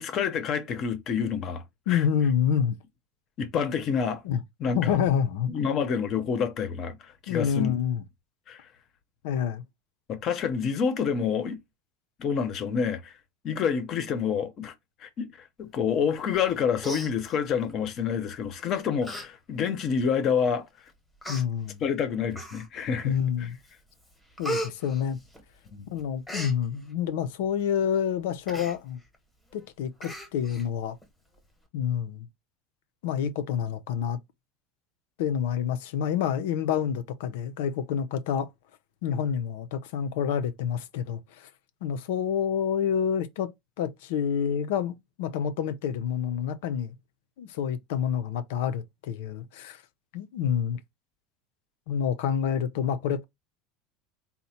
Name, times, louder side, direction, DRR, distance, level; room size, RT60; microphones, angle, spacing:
voice 1, 0.0-2.0 3.4-4.2 4.6-5.0 5.5-7.0 7.2-7.7 8.5-8.6 10.1-11.6 12.2-13.1 13.4-14.7 15.0-20.7 21.8-23.1 23.4-23.5 25.7-25.8, left 7 dB, 30° left, 0.7 m, -28 dB
voice 2, 1.9-2.8 4.2-4.4 4.7-5.5 7.3-8.0 9.2-9.6 21.3-21.8 23.0-23.6 24.4-25.2 25.9-29.0 29.5-31.0 31.7-32.3 33.0-34.2 35.2-38.5 39.0-41.5 41.8-43.5 43.8-46.9 47.4-49.8 50.1-50.8 51.9-53.2, left 8 dB, 80° left, 0.6 m, -28 dB
Human voice, 16.3-16.5 16.8-17.7 18.5-18.6 19.0-19.3 19.6-19.7 20.5-20.6 21.2-21.4 22.3-22.9 23.4-23.7 24.0-25.7 26.0-26.5 28.5-28.8 29.1-29.2 29.5-29.6 30.0-30.6 31.0-31.1, right 1 dB, 5° left, 0.9 m, -36 dB
4.1 x 2.1 x 4.2 m
cardioid pair, 175°, 0 cm